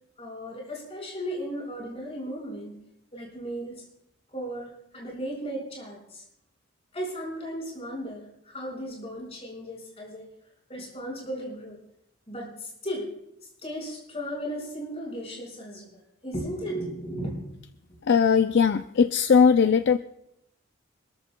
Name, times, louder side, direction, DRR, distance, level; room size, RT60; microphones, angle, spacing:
voice 1, 0.2-2.8 3.1-3.8 4.3-6.2 6.9-10.3 10.7-11.8 12.3-13.1 13.6-15.9 16.2-17.4, equal, 30° left, 0 dB, 4.9 m, -35 dB
voice 2, 18.1-20.0, left 6 dB, 55° left, 9 dB, 0.4 m, -19 dB
26.5 x 14.0 x 2.2 m, 0.82 s
head